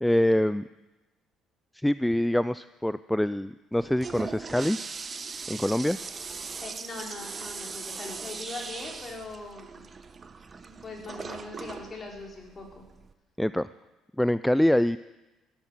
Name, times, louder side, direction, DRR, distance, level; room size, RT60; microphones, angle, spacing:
voice 1, 0.0-0.6 1.7-4.8 5.5-6.0 13.4-13.7 14.2-15.0, left 1 dB, 5° left, 15 dB, 0.4 m, -25 dB
Toilet flush, 3.7-13.1, right 5 dB, 35° right, 1.1 m, -40 dB
voice 2, 6.6-9.9 10.6-12.9, left 3 dB, 35° left, 0 dB, 5.0 m, -41 dB
16.0 x 11.0 x 7.6 m, 1.1 s
supercardioid pair, 70°, 0 cm